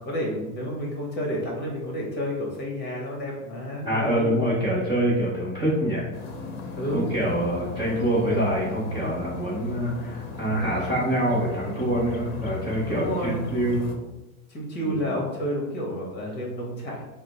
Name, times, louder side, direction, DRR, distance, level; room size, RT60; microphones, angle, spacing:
voice 1, 0.0-4.3 6.7-7.1 12.9-13.5 14.5-17.0, equal, 25° left, -2 dB, 1.1 m, -30 dB
voice 2, 3.8-6.1 6.9-13.9 14.8-15.0, right 1 dB, 10° right, -8 dB, 0.7 m, -25 dB
sound 1, 6.1-13.9, left 3 dB, 40° left, 0.8 m, -37 dB
4.8 x 2.1 x 4.2 m, 1.0 s
supercardioid pair, 155°, 43 cm